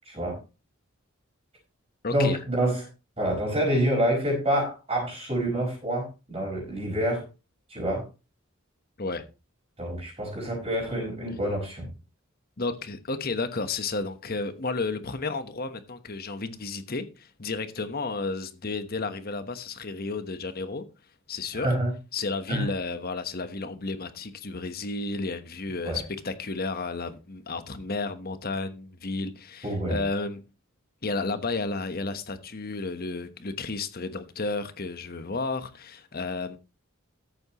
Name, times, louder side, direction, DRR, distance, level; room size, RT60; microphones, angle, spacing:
voice 1, 0.1-0.4 2.1-2.8 3.2-7.2 7.7-8.0 9.8-11.9 21.5-21.9 22.5-22.7 25.8-26.0 29.6-30.0, right 1 dB, 30° right, 5.3 m, -27 dB
voice 2, 2.0-2.4 9.0-9.2 12.6-20.8 21.3-21.7 22.1-30.4 31.0-36.6, left 3 dB, 45° left, 1.2 m, -32 dB
14.0 x 8.8 x 3.1 m
head